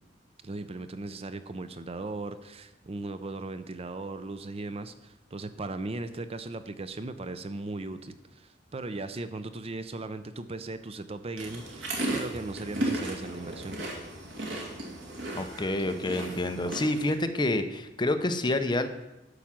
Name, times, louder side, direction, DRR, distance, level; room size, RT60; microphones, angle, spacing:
voice 1, 0.4-13.8, right 2 dB, 35° right, 11 dB, 0.5 m, -37 dB
sound 1, 11.4-17.1, right 1 dB, 85° right, 2.5 m, -35 dB
voice 2, 15.3-18.9, left 1 dB, 25° left, 8 dB, 0.7 m, -28 dB
11.5 x 4.9 x 7.4 m, 0.94 s
head